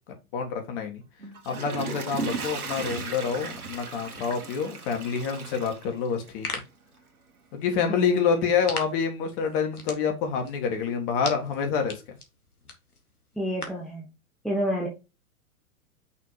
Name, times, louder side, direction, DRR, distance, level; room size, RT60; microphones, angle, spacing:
voice 1, 0.3-1.0 1.4-6.6 7.5-12.0, left 6 dB, 40° left, 1.7 m, -27 dB
Water / Toilet flush, 1.2-6.5 7.0-7.1, right 4 dB, 75° right, 1.6 m, -36 dB
sound 1, 6.1-13.9, left 3 dB, 85° left, 1.6 m, -42 dB
voice 2, 7.9-8.5 13.4-14.1 14.4-14.9, equal, ahead, 0.7 m, -29 dB
5.9 x 3.5 x 4.7 m
figure-of-eight pair, 115°, 44 cm